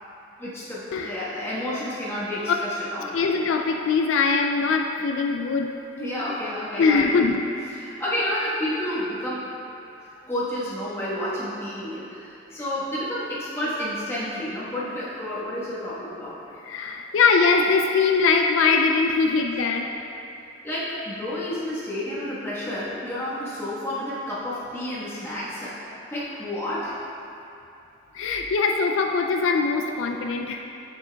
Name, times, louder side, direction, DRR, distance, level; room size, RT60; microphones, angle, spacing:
voice 1, 0.4-3.1 6.0-7.1 7.8-9.5 10.0-16.6 20.6-27.0, left 1 dB, 10° left, -10 dB, 1.3 m, -30 dB
voice 2, 3.1-5.8 6.8-7.4 16.6-19.9 28.1-30.6, left 4 dB, 75° left, 3 dB, 0.3 m, -22 dB
7.9 x 6.7 x 2.3 m, 2.8 s
head